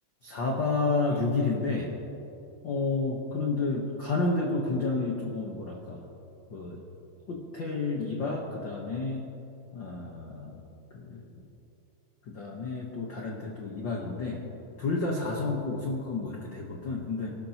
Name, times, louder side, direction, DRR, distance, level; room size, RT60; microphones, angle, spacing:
voice 1, 0.2-1.9 2.6-6.0 6.5-6.8 7.3-9.3 9.7-10.5 10.9-11.3 12.3-14.4 14.8-17.4, left 3 dB, 80° left, -1 dB, 1.0 m, -30 dB
24.5 x 12.0 x 2.9 m, 2.8 s
omnidirectional pair, 4.0 m